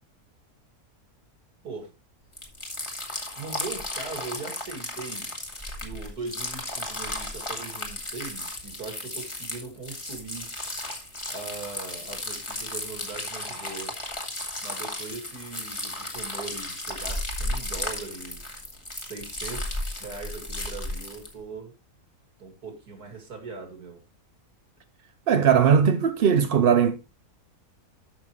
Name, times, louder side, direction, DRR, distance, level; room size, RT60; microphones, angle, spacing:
sound 1, 2.3-21.3, left 1 dB, 20° left, 2.0 m, -34 dB
voice 1, 3.4-5.4 5.8-10.5 11.3-13.9 14.6-18.6 19.0-21.7 22.4-24.0, right 4 dB, 85° right, 3.0 m, -40 dB
voice 2, 25.3-27.0, right 7 dB, 55° right, 0.7 m, -19 dB
13.0 x 5.8 x 3.1 m
omnidirectional pair, 1.6 m